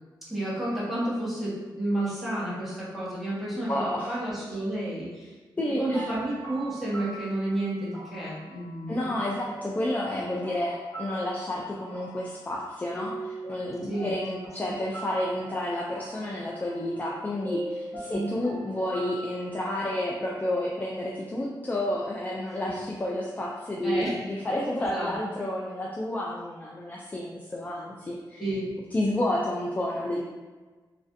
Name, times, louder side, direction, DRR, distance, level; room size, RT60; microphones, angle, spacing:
voice 1, 0.3-3.7 4.1-5.3 5.8-9.2 13.8-14.1 18.1-18.3 22.6-22.7 23.8-24.2 24.8-25.1 28.4-28.7, right 1 dB, ahead, -9 dB, 1.2 m, -31 dB
voice 2, 3.7-4.1 5.6-6.1 8.9-28.4 28.9-30.2, left 1 dB, 20° left, -2 dB, 0.3 m, -30 dB
sound 1, 5.8-19.5, right 1 dB, 40° left, 1.4 m, -42 dB
3.1 x 2.5 x 2.5 m, 1.3 s
wide cardioid pair, 100°, 8 cm